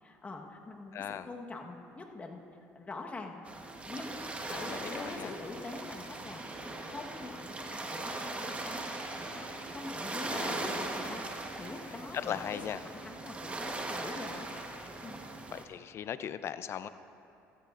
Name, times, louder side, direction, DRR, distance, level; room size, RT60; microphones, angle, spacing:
voice 1, 0.0-2.4 2.7-3.4 3.9-6.6 6.9-8.8 9.3-14.6 15.0-15.2, left 3 dB, 25° left, 2 dB, 1.3 m, -44 dB
voice 2, 0.9-1.3 4.4-5.3 10.3-10.6 12.1-12.8 15.5-16.9, left 9 dB, 50° left, 13 dB, 0.5 m, -38 dB
sound 1, 3.5-15.6, right 2 dB, 20° right, 1.2 m, -39 dB
16.0 x 14.0 x 2.5 m, 2.6 s
supercardioid pair, 95°, 6 cm